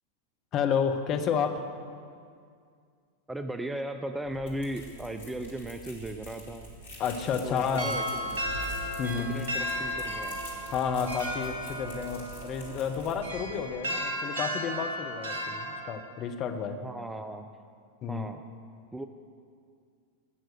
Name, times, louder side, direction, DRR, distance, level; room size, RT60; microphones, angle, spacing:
voice 1, 0.5-1.7 7.0-7.9 9.0-9.3 10.7-16.8 18.0-18.3, left 6 dB, 35° left, 6 dB, 1.0 m, -30 dB
voice 2, 3.3-6.7 7.4-8.4 9.3-10.4 16.8-17.5 18.1-18.4 18.9-19.1, right 1 dB, 5° right, 7 dB, 0.5 m, -37 dB
sound 1, 4.2-13.6, equal, 70° left, 2.7 m, -45 dB
sound 2, 7.7-15.8, equal, 60° right, 1.7 m, -35 dB
17.0 x 6.2 x 6.5 m, 2.2 s
figure-of-eight pair, 90°, 0 cm